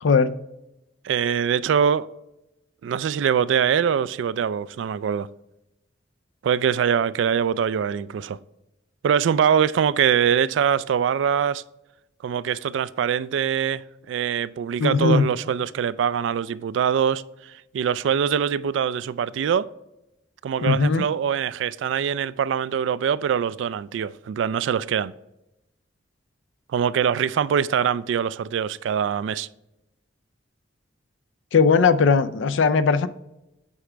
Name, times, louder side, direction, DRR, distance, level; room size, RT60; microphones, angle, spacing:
voice 1, 0.0-0.4 14.8-15.3 20.6-21.1 31.5-33.1, left 5 dB, 85° left, 0.4 m, -19 dB
voice 2, 1.0-2.1 2.8-5.3 6.4-8.4 9.0-11.6 12.2-19.7 20.4-25.1 26.7-29.5, right 7 dB, 75° right, 0.3 m, -23 dB
8.2 x 4.9 x 3.4 m
head